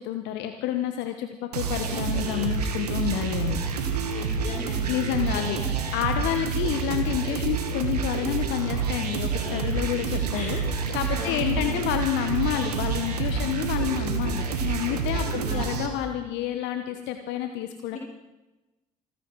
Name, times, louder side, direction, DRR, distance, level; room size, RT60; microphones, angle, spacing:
voice 1, 0.0-3.6 4.9-5.6 5.9-18.0, left 11 dB, 65° left, 7 dB, 1.2 m, -29 dB
sound 1, 1.5-15.9, right 5 dB, 80° right, 1.8 m, -28 dB
voice 2, 4.1-5.7 9.8-10.7 11.1-11.8 15.2-15.7 17.9-18.0, left 1 dB, 40° left, -2 dB, 6.2 m, -38 dB
26.5 x 10.0 x 4.8 m, 1.0 s
figure-of-eight pair, 50°, 20 cm